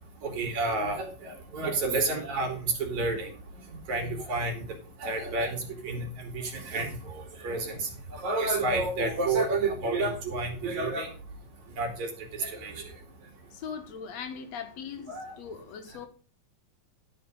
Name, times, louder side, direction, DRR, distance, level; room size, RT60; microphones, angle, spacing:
voice 1, 0.2-3.3 3.9-4.5 5.0-6.1 6.3-7.9 8.2-11.1 11.8-12.1 12.4-12.7 15.1-15.3, right 3 dB, 60° right, 3.9 m, -30 dB
voice 2, 13.5-16.1, left 7 dB, 65° left, 2.1 m, -40 dB
12.5 x 6.1 x 5.3 m
omnidirectional pair, 3.7 m